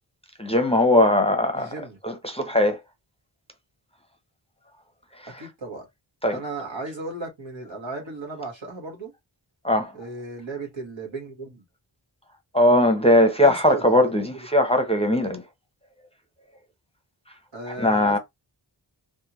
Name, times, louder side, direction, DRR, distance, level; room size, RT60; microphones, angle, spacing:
voice 1, 0.4-2.8 5.2-5.5 6.2-6.4 9.6-9.9 12.5-15.4 17.8-18.2, left 1 dB, 15° left, 0.7 m, -20 dB
voice 2, 1.5-2.0 5.4-5.8 6.3-9.1 9.9-11.6 13.4-14.1 17.5-18.2, right 3 dB, 70° right, 1.5 m, -35 dB
3.4 x 2.2 x 3.0 m
wide cardioid pair, 60°, 48 cm